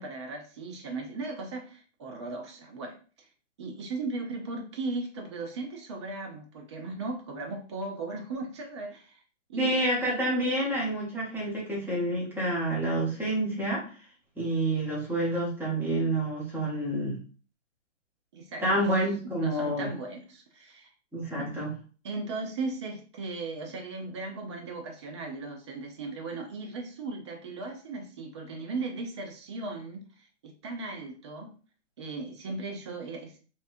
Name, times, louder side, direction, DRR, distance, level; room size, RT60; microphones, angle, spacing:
voice 1, 0.0-3.0 3.6-9.2 9.5-9.8 18.3-18.9 19.4-20.9 21.4-21.6 22.0-30.0 30.4-31.5 32.0-33.4, right 3 dB, 25° right, 3 dB, 0.4 m, -37 dB
voice 2, 9.6-13.8 14.4-17.2 18.6-19.9 21.1-21.7, right 1 dB, 5° right, -5 dB, 1.0 m, -28 dB
3.1 x 2.9 x 2.6 m, 0.38 s
hypercardioid pair, 130°, 37 cm